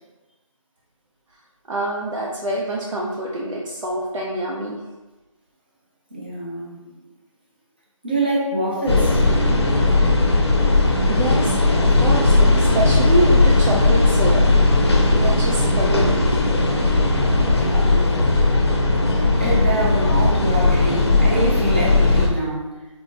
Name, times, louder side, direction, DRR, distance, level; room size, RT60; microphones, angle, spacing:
voice 1, 1.7-4.8 11.1-14.5 15.1-16.4, right 1 dB, 65° right, -3 dB, 0.6 m, -25 dB
voice 2, 6.1-6.8 8.0-9.2 17.4-18.4 19.3-22.7, right 1 dB, 15° right, -5 dB, 0.5 m, -25 dB
sound 1, 8.9-22.3, left 2 dB, 50° left, 0.6 m, -17 dB
4.4 x 2.7 x 2.7 m, 1.1 s
figure-of-eight pair, 170°, 17 cm